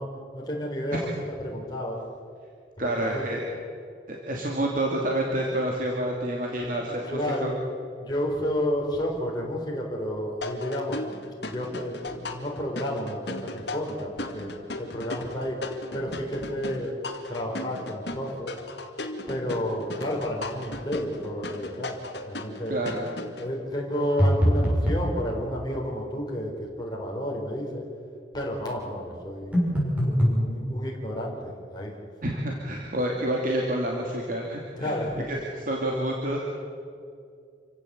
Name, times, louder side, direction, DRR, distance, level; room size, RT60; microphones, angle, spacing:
voice 1, 0.0-2.0 2.8-3.3 6.6-7.6 8.0-11.0 11.4-14.5 14.8-15.6 15.9-17.0 17.3-18.5 19.3-22.0 22.3-22.8 23.4-27.8 28.3-29.6 30.0-31.9 32.2-32.3 34.8-35.3, equal, 20° left, -2 dB, 4.0 m, -31 dB
voice 2, 2.8-3.4 4.1-7.5 22.7-23.0 32.2-35.0 35.3-35.4 35.7-36.4, right 1 dB, 45° right, -1 dB, 2.8 m, -28 dB
sound 1, 10.4-23.5, left 2 dB, 65° left, 2.2 m, -37 dB
sound 2, 24.2-25.1 29.5-30.4, equal, 10° right, 6.9 m, -22 dB
27.5 x 16.0 x 8.1 m, 2.4 s
head